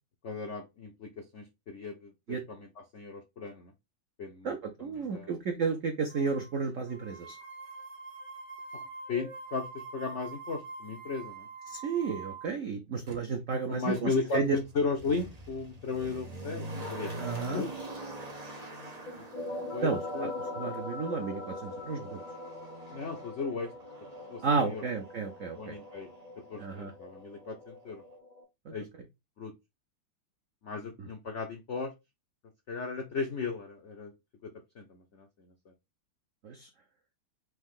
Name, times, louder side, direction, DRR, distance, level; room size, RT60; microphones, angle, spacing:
voice 1, 0.2-3.7 4.2-5.3 8.7-11.5 13.7-17.2 17.5-17.7 19.2-20.3 22.9-23.7 24.3-24.8 25.5-26.1 26.5-28.0 28.7-28.9 29.4-29.5 30.6-31.9 32.7-34.1 34.4-35.3, left 4 dB, 80° left, 0.6 m, -36 dB
voice 2, 4.4-7.4 11.7-14.6 17.2-17.6 19.8-22.2 24.4-25.8 26.6-26.9 28.7-28.8 36.4-36.7, right 5 dB, 80° right, 0.7 m, -32 dB
sound 1, 6.1-6.5 6.9-12.5, right 4 dB, 65° right, 1.4 m, -45 dB
Motor vehicle (road), 13.1-13.2 13.9-26.8 27.1-27.2, right 1 dB, 35° right, 0.6 m, -45 dB
sound 2, 19.1-28.4, left 2 dB, 25° left, 1.1 m, -42 dB
4.6 x 2.7 x 3.7 m
omnidirectional pair, 2.2 m